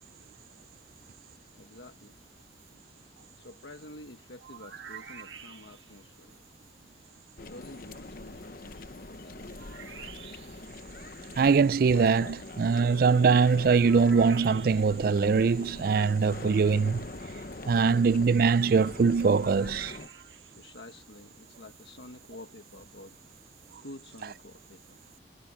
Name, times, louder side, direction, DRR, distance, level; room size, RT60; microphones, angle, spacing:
voice 1, 1.6-2.2 3.3-6.4 7.4-10.1 20.6-23.2 23.8-25.0, left 1 dB, 75° left, 1.4 m, -49 dB
sound 1, 4.4-6.0 9.6-10.7 13.8-15.1 19.2-20.5, right 7 dB, 75° right, 1.6 m, -47 dB
sound 2, 7.4-20.1, left 2 dB, 50° left, 1.0 m, -43 dB
voice 2, 11.4-17.0 17.7-19.9, right 5 dB, 50° right, 0.3 m, -22 dB
head